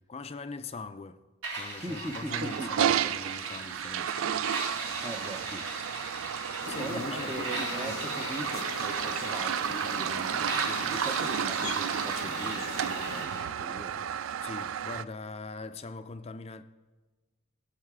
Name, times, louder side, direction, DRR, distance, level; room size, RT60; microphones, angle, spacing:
voice 1, 0.1-1.2 1.5-5.0 6.2-6.4 6.7-8.0 14.4-16.6, left 3 dB, 30° left, 0.5 m, -42 dB
sound 1, 1.4-13.4, right 2 dB, 85° right, 3.8 m, -39 dB
voice 2, 1.8-3.2 5.0-5.7 6.7-14.0, right 1 dB, 15° right, 0.6 m, -40 dB
Toilet flush, 2.1-15.0, right 9 dB, 70° right, 0.3 m, -32 dB
sound 2, 6.6-13.3, left 5 dB, 80° left, 0.7 m, -41 dB
19.5 x 7.5 x 3.6 m
head